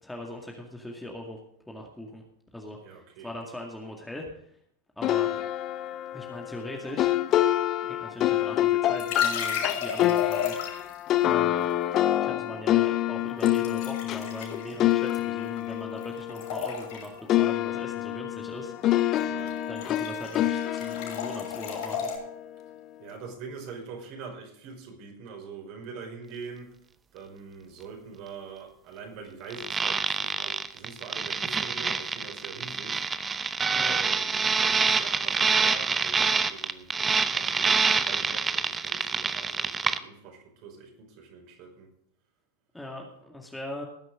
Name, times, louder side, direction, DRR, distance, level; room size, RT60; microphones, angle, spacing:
voice 1, 0.0-1.4 1.7-2.2 2.5-4.3 5.0-5.3 6.1-7.1 7.8-10.9 11.2-11.7 12.2-18.7 19.7-22.1 33.7-34.0 42.7-43.9, left 1 dB, 5° left, 0 dB, 2.1 m, -40 dB
voice 2, 2.8-3.3 19.3-19.6 23.0-26.7 27.1-33.0 33.8-41.9, right 5 dB, 45° right, 2 dB, 5.4 m, -44 dB
sound 1, 5.0-17.0 17.3-22.5, left 13 dB, 35° left, 0.8 m, -27 dB
sound 2, 9.0-11.0 13.4-15.8 16.0-17.2 19.0-19.2 19.5-22.2, left 7 dB, 50° left, 6.0 m, -35 dB
sound 3, 29.5-40.0, right 5 dB, 15° right, 0.8 m, -26 dB
19.5 x 10.5 x 3.8 m, 0.69 s
figure-of-eight pair, 90°, 0 cm